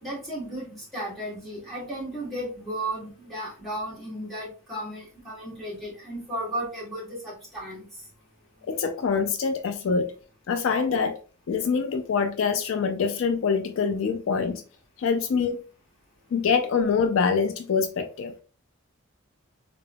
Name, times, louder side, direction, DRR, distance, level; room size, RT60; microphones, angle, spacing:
voice 1, 0.0-7.9, right 1 dB, ahead, 1.8 m, -34 dB
voice 2, 8.7-10.1 10.5-11.2 11.5-14.6 15.0-15.6 16.3-18.3, left 5 dB, 65° left, 0.3 m, -25 dB
3.9 x 3.3 x 2.2 m
head